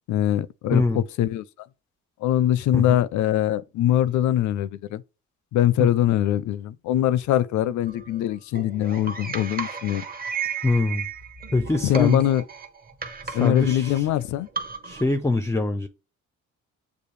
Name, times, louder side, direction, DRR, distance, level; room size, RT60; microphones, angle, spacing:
voice 1, 0.1-1.4 2.2-5.0 5.5-10.1 11.8-12.4 13.3-14.5, left 12 dB, 75° left, 0.4 m, -22 dB
voice 2, 0.7-1.0 2.7-3.0 5.8-5.9 10.6-11.1 11.5-12.2 13.2-14.1 14.8-15.9, left 3 dB, 10° left, 0.4 m, -23 dB
sound 1, 7.9-15.1, right 6 dB, 30° right, 0.8 m, -35 dB
6.8 x 2.4 x 3.1 m
cardioid pair, 90°, 30 cm